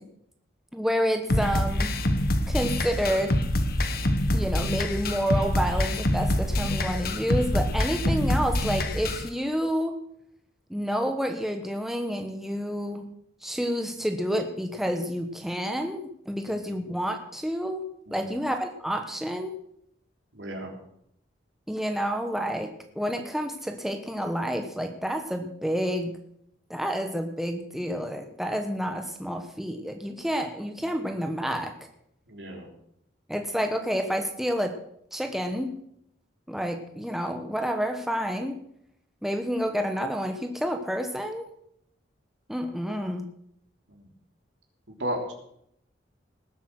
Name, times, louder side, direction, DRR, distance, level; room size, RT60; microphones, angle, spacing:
voice 1, 0.7-1.9 2.5-3.4 4.3-10.0 10.7-13.1 13.4-17.8 18.1-19.5 21.7-26.1 26.7-31.7 33.3-34.8 35.1-35.7 36.5-38.6 39.2-41.5 42.5-43.2, equal, ahead, 5 dB, 1.0 m, -29 dB
sound 1, 1.3-9.3, left 1 dB, 50° left, 1.3 m, -26 dB
voice 2, 18.1-18.4 20.3-20.7 32.3-32.7 43.9-44.1 44.9-45.3, equal, 80° right, 1 dB, 3.5 m, -35 dB
19.0 x 8.2 x 6.4 m, 0.72 s
head